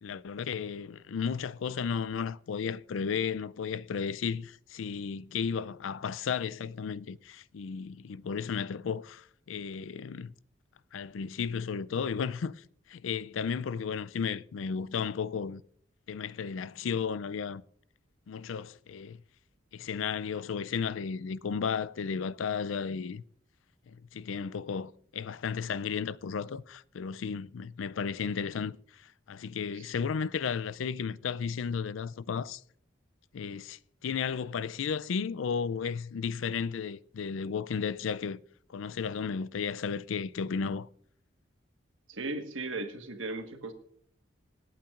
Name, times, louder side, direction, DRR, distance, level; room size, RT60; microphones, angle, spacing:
voice 1, 0.0-10.3 10.9-15.6 16.1-17.6 18.3-19.2 19.7-23.2 23.9-32.6 33.3-38.4 38.7-40.9, left 6 dB, 80° left, 0.4 m, -34 dB
voice 2, 42.1-43.7, right 2 dB, 80° right, 1.5 m, -37 dB
26.0 x 8.7 x 2.5 m
head